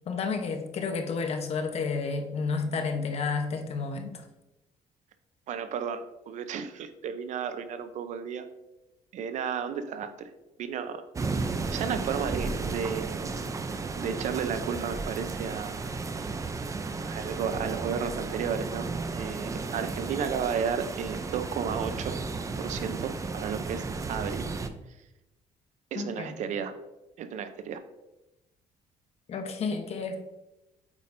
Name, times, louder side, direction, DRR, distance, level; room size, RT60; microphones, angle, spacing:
voice 1, 0.1-4.2 25.9-26.3 29.3-30.2, left 4 dB, 50° left, 6 dB, 0.9 m, -31 dB
voice 2, 5.5-8.5 9.1-10.3 10.6-11.0 11.7-13.4 14.0-15.9 17.0-22.2 22.6-24.5 25.9-26.7 27.2-27.8, right 7 dB, 65° right, 10 dB, 0.6 m, -33 dB
sound 1, 11.2-24.7, right 4 dB, 25° right, 0.5 m, -34 dB
8.2 x 5.2 x 2.6 m, 0.97 s
cardioid pair, 110°, 13 cm